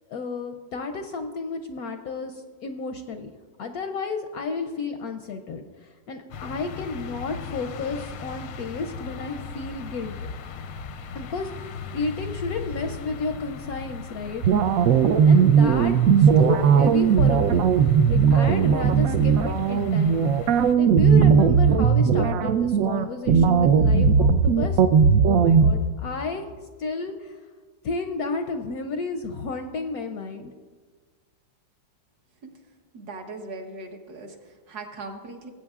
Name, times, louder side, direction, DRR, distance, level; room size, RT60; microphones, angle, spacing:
voice 1, 0.1-3.3 3.6-10.1 11.1-14.4 15.2-20.4 20.8-24.8 25.2-26.5 26.8-27.4 27.8-30.5, left 4 dB, 70° left, 6 dB, 0.9 m, -32 dB
sound 1, 6.3-20.8, left 5 dB, 90° left, 1.4 m, -38 dB
sound 2, 14.4-25.7, right 6 dB, 80° right, 0.7 m, -18 dB
voice 2, 32.9-35.5, right 3 dB, 60° right, 3 dB, 1.5 m, -39 dB
19.5 x 8.5 x 2.4 m, 1.5 s
omnidirectional pair, 2.0 m